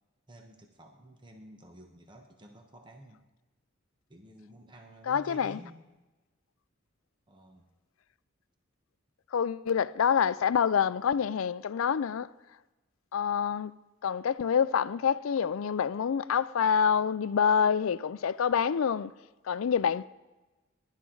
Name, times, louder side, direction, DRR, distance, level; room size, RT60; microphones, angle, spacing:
voice 1, 0.3-3.2 4.1-5.9 7.3-7.7, right 1 dB, 25° right, 1.1 m, -51 dB
voice 2, 5.1-5.6 9.3-12.3 13.1-13.7 14.0-19.1 19.5-20.0, left 7 dB, 85° left, 0.4 m, -27 dB
20.5 x 11.5 x 3.9 m
head